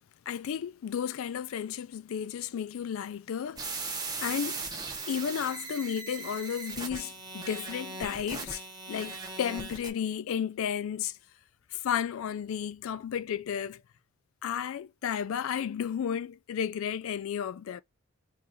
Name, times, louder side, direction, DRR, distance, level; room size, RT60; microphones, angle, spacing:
voice 1, 0.3-3.7 4.2-4.6 5.1-11.2 11.7-13.8 14.4-17.8, left 8 dB, 75° left, 0.3 m, -33 dB
sound 1, 3.6-9.9, right 4 dB, 20° right, 0.8 m, -38 dB
3.8 x 2.4 x 4.3 m
head